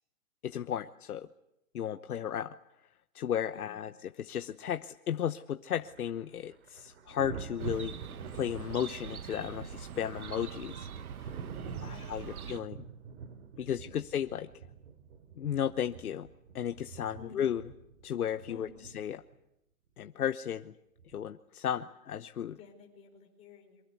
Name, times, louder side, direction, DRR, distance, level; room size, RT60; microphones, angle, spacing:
voice 1, 0.4-1.3 1.7-2.5 3.1-8.0 8.3-10.9 11.8-12.8 13.6-14.5 15.4-16.3 16.5-17.6 18.0-18.7 18.9-19.2 20.0-20.7 21.1-22.6, left 9 dB, 80° left, 9 dB, 1.1 m, -34 dB
voice 2, 3.5-3.9 11.4-12.6 13.5-14.0 17.1-17.5 18.4-18.9 22.6-23.9, left 5 dB, 15° left, 1 dB, 4.8 m, -54 dB
Thunder, 5.7-19.4 21.0-21.2, right 6 dB, 50° right, 3.0 m, -46 dB
Chirp tweet, 7.6-12.6, right 8 dB, 75° right, 1.5 m, -43 dB
26.0 x 24.0 x 8.3 m, 0.84 s
hypercardioid pair, 160°, 44 cm